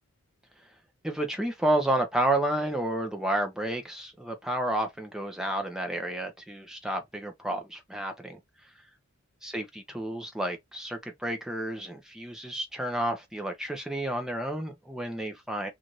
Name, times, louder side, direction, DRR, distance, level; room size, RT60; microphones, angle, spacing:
voice 1, 1.0-8.4 9.4-15.7, right 1 dB, ahead, 0.6 m, -31 dB
2.6 x 2.5 x 3.0 m
head